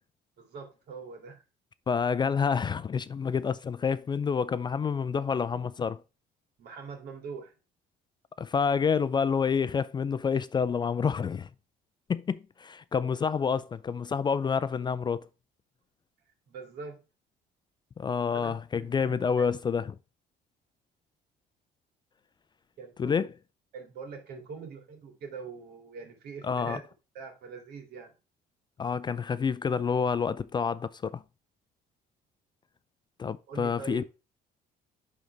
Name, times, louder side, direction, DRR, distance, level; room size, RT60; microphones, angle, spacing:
voice 1, 0.4-1.4 6.6-7.5 16.5-17.0 18.3-19.5 22.8-23.2 23.7-26.8 27.1-28.1 33.5-34.1, right 5 dB, 70° right, 2.5 m, -43 dB
voice 2, 1.9-6.0 8.4-11.5 12.1-15.3 18.0-20.0 23.0-23.3 26.4-26.8 28.8-31.2 33.2-34.0, left 6 dB, 25° left, 0.3 m, -28 dB
10.5 x 3.9 x 3.3 m
cardioid pair, 110°, 17 cm